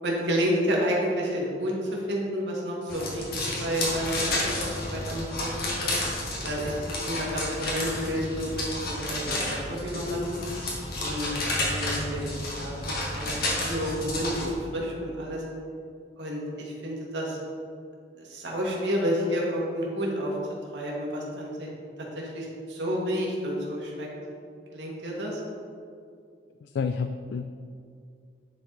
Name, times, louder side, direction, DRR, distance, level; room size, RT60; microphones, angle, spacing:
voice 1, 0.0-5.9 6.4-10.4 11.0-11.3 11.7-12.7 13.1-15.4 16.2-17.4 18.2-20.3 20.7-21.7 22.2-24.1 24.7-25.4, equal, 90° right, -3 dB, 1.8 m, -30 dB
sound 1, 2.9-14.5, left 1 dB, 55° left, 1.7 m, -31 dB
voice 2, 26.6-27.5, left 5 dB, 75° left, 8 dB, 0.3 m, -30 dB
10.5 x 4.7 x 3.9 m, 2.3 s
head